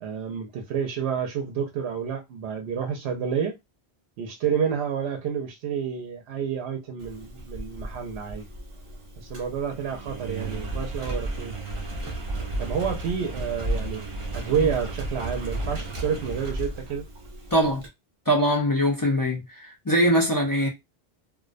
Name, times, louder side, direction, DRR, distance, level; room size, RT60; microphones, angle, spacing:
voice 1, 0.0-3.6 4.2-8.4 9.2-11.5 12.6-14.0 14.3-17.0, right 7 dB, 85° right, 0.8 m, -29 dB
Engine, 7.0-17.9, right 1 dB, 40° right, 0.5 m, -33 dB
voice 2, 17.5-17.8 18.3-20.7, equal, 35° left, 0.3 m, -22 dB
2.4 x 2.1 x 2.4 m
omnidirectional pair, 1.1 m